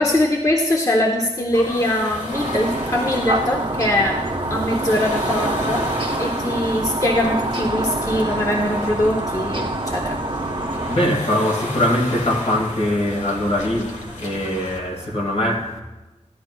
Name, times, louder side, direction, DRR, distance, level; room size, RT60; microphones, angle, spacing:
voice 1, 0.0-4.2 4.5-5.9 6.2-10.2, left 1 dB, 25° left, 0.8 m, -22 dB
sound 1, 1.5-14.8, left 1 dB, 85° left, 1.5 m, -34 dB
sound 2, 2.3-11.1, right 2 dB, 45° right, 0.9 m, -25 dB
voice 2, 10.7-15.8, left 1 dB, 55° left, 1.7 m, -22 dB
13.5 x 11.5 x 2.2 m
wide cardioid pair, 65°, 12 cm